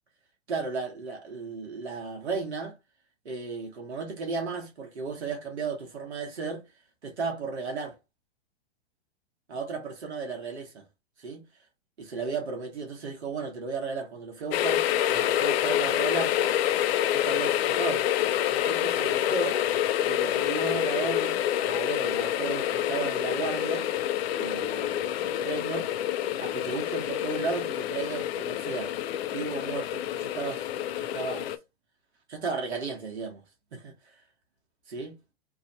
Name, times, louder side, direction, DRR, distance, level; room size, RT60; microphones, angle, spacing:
voice 1, 0.5-2.8 3.2-6.6 7.0-8.0 9.5-10.8 11.2-11.4 12.0-16.5 17.1-18.1 18.5-19.6 19.8-23.9 24.3-25.9 26.4-28.9 29.3-30.7 31.0-31.6 32.3-33.4 33.7-34.2 34.9-35.2, right 4 dB, 85° right, 1.3 m, -35 dB
sound 1, 14.5-31.6, left 11 dB, 70° left, 0.6 m, -27 dB
3.0 x 2.7 x 4.0 m
hypercardioid pair, 115°, 32 cm